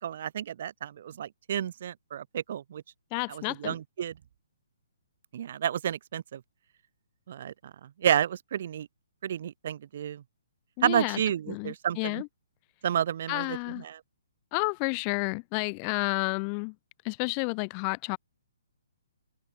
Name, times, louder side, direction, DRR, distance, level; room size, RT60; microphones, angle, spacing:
voice 1, 0.0-2.8 3.3-4.1 5.3-6.4 7.3-8.9 9.2-10.2 10.8-12.2 12.8-14.0, right 10 dB, 55° right, 1.0 m, -31 dB
voice 2, 3.1-3.7 10.8-11.2 11.5-12.3 13.3-13.8 14.5-16.7 17.0-18.2, left 40 dB or more, 30° left, 1.1 m, -31 dB
hypercardioid pair, 135°, 0 cm